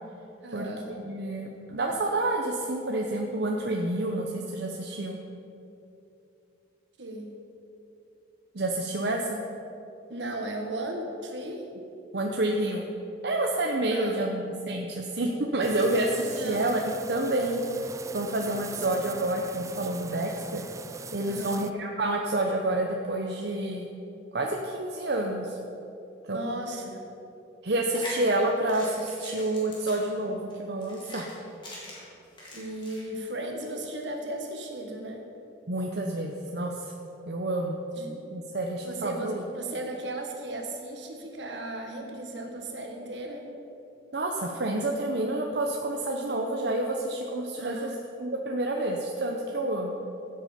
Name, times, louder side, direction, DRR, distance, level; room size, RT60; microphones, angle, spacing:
voice 1, 0.4-0.9 7.0-7.3 10.1-11.6 13.9-14.3 16.2-16.7 21.2-21.6 26.3-27.0 32.5-35.3 38.0-38.2 38.8-43.5 47.6-48.0, right 1 dB, 80° right, 2 dB, 1.7 m, -36 dB
voice 2, 1.0-5.2 8.5-9.4 12.1-12.8 13.2-16.8 17.1-17.6 18.1-20.6 21.1-23.9 24.3-25.6 26.3-26.6 27.6-31.3 35.7-36.9 37.3-37.8 38.3-39.4 44.1-47.9 48.2-49.9, right 1 dB, 60° right, 0 dB, 0.9 m, -29 dB
sound 1, 15.6-21.7, right 4 dB, 15° right, 0.3 m, -42 dB
sound 2, 27.7-33.0, left 1 dB, 25° left, 3.1 m, -43 dB
15.5 x 8.2 x 5.1 m, 2.8 s
head